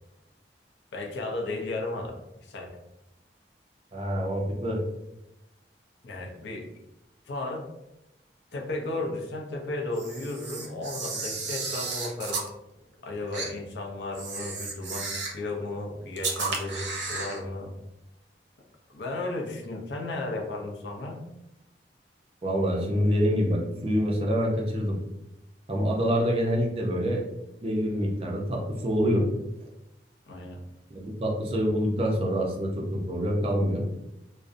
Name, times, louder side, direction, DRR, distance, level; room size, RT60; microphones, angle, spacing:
voice 1, 0.9-2.8 6.0-6.7 7.3-7.7 8.5-12.5 13.0-17.7 18.9-21.3 30.3-30.6, left 2 dB, 80° left, 1 dB, 0.5 m, -34 dB
voice 2, 3.9-4.8 22.4-25.0 25.7-27.3 27.6-29.3 30.9-33.8, equal, 35° right, -1 dB, 0.4 m, -26 dB
Camera, 9.9-12.5 13.3-13.5 14.1-15.4 16.2-17.4, right 4 dB, 85° right, 0.5 m, -33 dB
2.5 x 2.0 x 2.5 m, 0.90 s
head